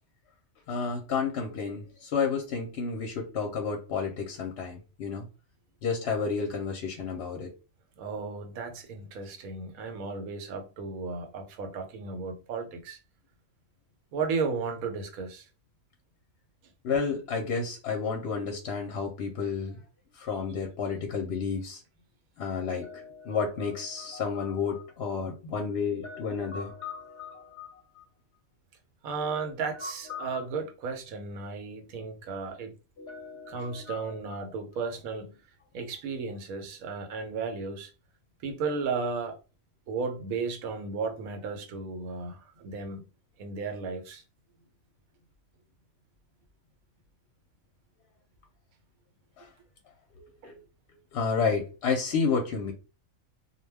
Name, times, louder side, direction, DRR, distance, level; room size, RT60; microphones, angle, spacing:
voice 1, 0.7-5.2 5.8-7.5 16.8-19.8 20.2-21.8 22.4-28.0 29.2-29.5 29.7-30.4 33.0-34.2 49.4-49.5 50.1-50.6 51.1-52.7, left 5 dB, 60° left, 0.7 m, -31 dB
voice 2, 8.0-13.0 14.1-15.4 29.0-32.8 33.5-35.4 35.7-37.9 38.4-39.4 39.9-43.1 43.4-44.2, right 4 dB, 85° right, 1.1 m, -34 dB
2.3 x 2.2 x 3.2 m
omnidirectional pair, 1.4 m